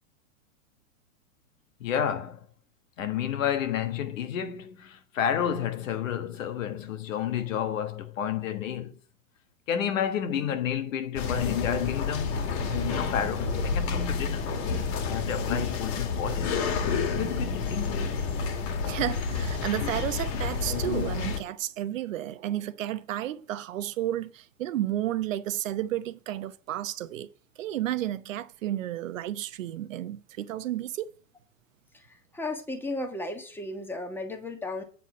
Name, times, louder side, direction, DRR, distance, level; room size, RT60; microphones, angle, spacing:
voice 1, 1.8-2.4 3.0-8.9 9.7-12.4 12.9-14.4 15.0-16.6 17.1-18.2, left 9 dB, 70° left, 1.5 m, -30 dB
sound 1, 11.2-21.4, left 5 dB, 50° left, 2.1 m, -29 dB
voice 2, 18.9-27.3 27.6-31.1, right 13 dB, 65° right, 0.9 m, -32 dB
voice 3, 32.3-34.8, left 2 dB, 5° left, 1.4 m, -34 dB
8.9 x 4.3 x 7.4 m
hypercardioid pair, 125°, 41 cm